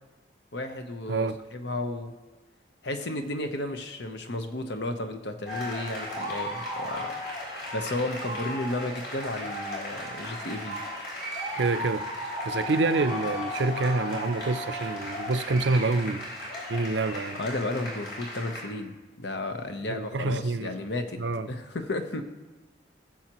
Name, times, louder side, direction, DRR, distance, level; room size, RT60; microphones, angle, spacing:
voice 1, 0.5-2.1 2.8-7.1 7.7-10.8 17.4-21.2 21.5-22.2, left 2 dB, 80° left, 1.0 m, -33 dB
voice 2, 1.1-1.4 11.6-16.3 16.7-17.4 19.9-20.8 21.2-21.5, right 3 dB, 85° right, 0.6 m, -27 dB
sound 1, 5.5-18.6, left 1 dB, 65° left, 4.1 m, -35 dB
18.0 x 7.3 x 3.0 m
head